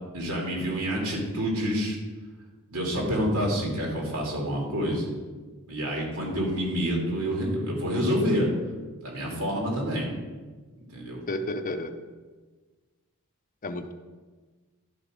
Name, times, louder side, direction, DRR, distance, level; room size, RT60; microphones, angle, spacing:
voice 1, 0.1-2.0 2.7-5.1 5.7-8.5 9.0-10.1 10.9-11.2, equal, 85° right, -2 dB, 2.6 m, -27 dB
voice 2, 11.3-11.9 13.6-13.9, left 2 dB, 35° left, 8 dB, 0.5 m, -31 dB
11.5 x 5.0 x 5.0 m, 1.4 s
head